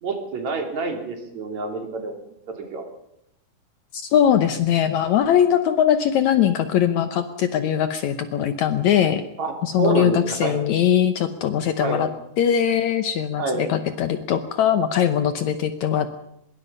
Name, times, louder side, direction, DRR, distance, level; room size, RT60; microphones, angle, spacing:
voice 1, 0.0-2.1 2.7-2.9 9.4-9.5 9.8-10.6 11.8-12.0 13.4-13.7, right 3 dB, 55° right, 4 dB, 4.3 m, -27 dB
voice 2, 3.9-9.2 9.6-12.1 12.4-16.1, left 9 dB, 70° left, 10 dB, 2.0 m, -21 dB
24.0 x 22.0 x 5.5 m, 0.78 s
omnidirectional pair, 3.8 m